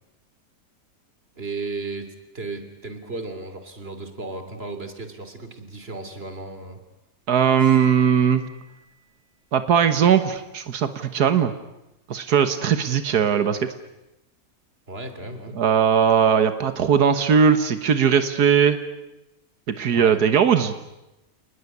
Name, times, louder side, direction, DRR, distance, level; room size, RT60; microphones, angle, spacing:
voice 1, 1.4-6.8 14.9-15.6 19.9-20.2, right 3 dB, 40° right, 8 dB, 3.3 m, -35 dB
voice 2, 7.3-8.4 9.5-11.5 12.1-13.7 15.6-18.8 19.7-20.7, right 7 dB, 90° right, 10 dB, 1.9 m, -19 dB
Cymbal, 7.5-8.9, right 2 dB, 65° right, 5.4 m, -43 dB
29.5 x 20.0 x 9.7 m, 0.94 s
omnidirectional pair, 1.6 m